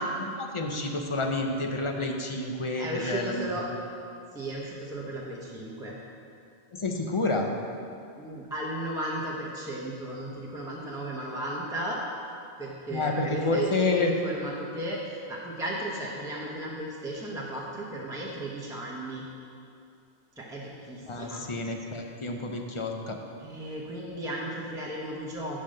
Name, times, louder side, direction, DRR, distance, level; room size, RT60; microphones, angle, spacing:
voice 1, 0.2-3.5 6.7-7.5 12.9-14.1 21.0-23.2, left 2 dB, 35° left, 2 dB, 0.5 m, -29 dB
voice 2, 2.8-3.7 4.3-6.0 8.1-12.0 12.6-19.2 20.4-21.5 23.4-25.6, right 1 dB, 5° right, -5 dB, 0.8 m, -35 dB
7.6 x 5.1 x 6.5 m, 2.5 s
omnidirectional pair, 1.2 m